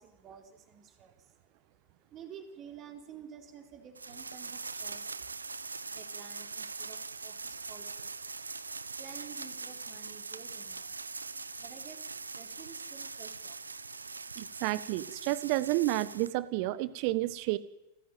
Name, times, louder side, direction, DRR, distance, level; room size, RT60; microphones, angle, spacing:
voice 1, 0.0-8.6 9.0-14.3, right 7 dB, 30° right, 5 dB, 4.3 m, -52 dB
sound 1, 4.0-16.3, right 4 dB, 80° right, 0.8 m, -42 dB
voice 2, 14.4-17.6, right 17 dB, 45° right, 17 dB, 1.3 m, -30 dB
28.5 x 15.0 x 9.4 m, 0.90 s
figure-of-eight pair, 90°, 0 cm